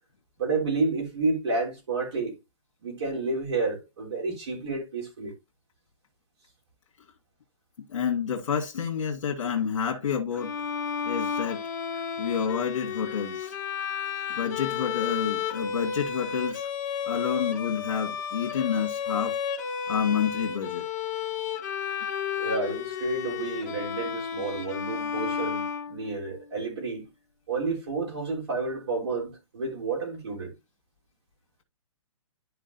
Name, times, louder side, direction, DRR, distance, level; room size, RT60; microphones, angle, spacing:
voice 1, 0.4-2.4 2.8-5.3 22.4-27.0 27.5-30.5, right 3 dB, 55° right, 3.5 m, -30 dB
voice 2, 7.9-10.5 11.1-11.6 12.2-13.5 14.4-16.7 17.1-19.4 19.9-20.9, left 7 dB, 70° left, 1.8 m, -29 dB
Bowed string instrument, 10.4-26.3, left 7 dB, 30° left, 1.3 m, -32 dB
12.5 x 4.9 x 2.6 m
hypercardioid pair, 175°, 17 cm